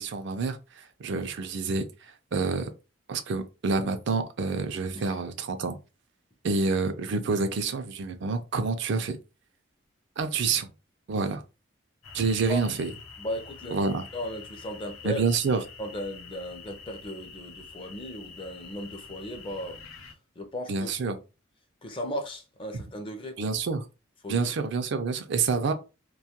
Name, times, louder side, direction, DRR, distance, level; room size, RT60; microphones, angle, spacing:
voice 1, 0.0-2.7 3.1-5.8 6.4-9.2 10.2-10.7 11.1-11.4 12.1-12.9 13.7-14.0 15.0-15.6 20.7-21.2 22.7-22.8 23.4-23.8 24.3-25.7, right 4 dB, 55° right, 0.4 m, -28 dB
sound 1, 12.0-20.1, left 5 dB, 80° left, 0.7 m, -46 dB
voice 2, 13.2-13.8 14.1-15.2 15.8-19.8 20.4-20.9 21.8-23.4 24.2-24.5, left 1 dB, 25° left, 0.4 m, -36 dB
2.3 x 2.2 x 2.8 m
head